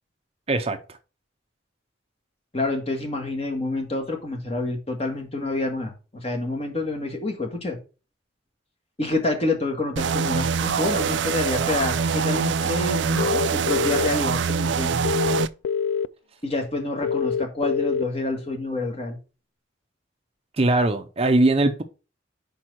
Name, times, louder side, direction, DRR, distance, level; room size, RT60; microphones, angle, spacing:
voice 1, 2.5-7.8 9.0-15.0 16.4-19.2, left 2 dB, 35° left, 1.7 m, -28 dB
sound 1, 10.0-15.5, right 5 dB, 75° right, 0.4 m, -24 dB
sound 2, 13.2-14.1 15.0-16.1 17.0-18.0, left 6 dB, 90° left, 0.3 m, -25 dB
voice 2, 20.6-21.8, right 2 dB, 35° right, 0.6 m, -20 dB
5.3 x 4.5 x 6.0 m
head